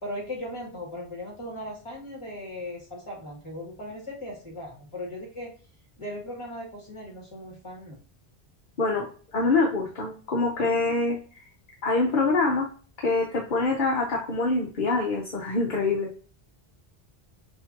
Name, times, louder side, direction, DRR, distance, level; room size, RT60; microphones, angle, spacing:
voice 1, 0.0-5.5 6.0-8.0, left 1 dB, 30° left, -3 dB, 1.9 m, -38 dB
voice 2, 8.8-11.4 11.8-12.7 13.0-16.1, left 3 dB, 55° left, 0 dB, 0.9 m, -25 dB
6.3 x 2.5 x 2.7 m, 0.40 s
omnidirectional pair, 1.0 m